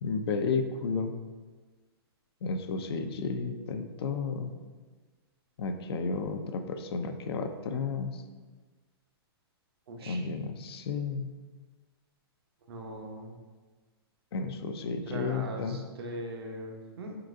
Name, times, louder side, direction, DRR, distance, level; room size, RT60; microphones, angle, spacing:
voice 1, 0.0-1.2 2.4-4.5 5.6-8.2 10.1-11.3 14.3-15.8, left 4 dB, 70° left, 7 dB, 0.5 m, -32 dB
voice 2, 9.9-10.3 12.7-13.4 15.1-17.2, right 1 dB, 70° right, 3 dB, 0.8 m, -40 dB
4.5 x 3.8 x 2.5 m, 1.3 s
hypercardioid pair, 145°, 13 cm